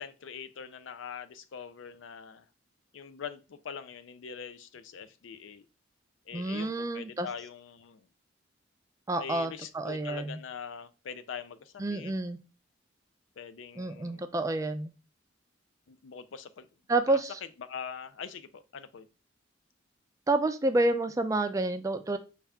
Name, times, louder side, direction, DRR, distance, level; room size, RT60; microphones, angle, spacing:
voice 1, 0.0-2.5 2.9-5.7 6.3-8.1 9.2-12.1 13.4-14.3 15.9-16.7 17.1-17.2 17.6-19.1, left 6 dB, 75° left, 0.4 m, -43 dB
voice 2, 6.3-7.3 9.1-10.4 11.8-12.4 13.8-14.9 16.9-17.4 20.3-22.2, right 2 dB, 15° right, 0.3 m, -29 dB
5.5 x 2.4 x 3.4 m
head